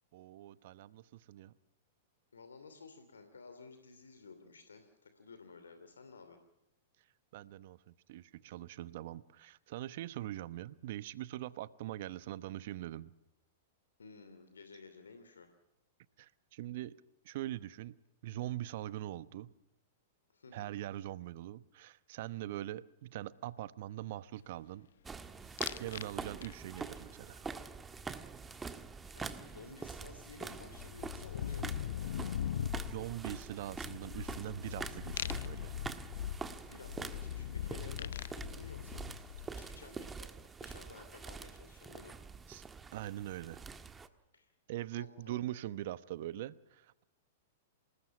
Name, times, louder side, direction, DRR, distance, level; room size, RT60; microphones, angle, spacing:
voice 1, 0.1-1.5 7.3-13.1 16.2-17.0 17.2-18.0 18.2-19.5 20.5-24.9 25.5-27.5 32.9-35.9 42.5-42.6 42.9-43.6 44.7-47.0, right 14 dB, 55° right, 17 dB, 0.9 m, -42 dB
voice 2, 2.3-6.4 8.4-8.5 14.0-15.5 20.3-20.7 29.1-32.0 36.7-39.1 39.5-42.2 44.3-44.6 44.9-45.4, left 4 dB, 80° left, 8 dB, 2.8 m, -54 dB
sound 1, 25.0-44.1, right 4 dB, 15° right, 1.5 m, -46 dB
sound 2, 25.6-26.1 26.4-26.9 29.3-29.4 29.7-39.7, left 10 dB, 65° left, 0.9 m, -41 dB
28.0 x 20.0 x 5.9 m, 0.90 s
figure-of-eight pair, 105°, 0 cm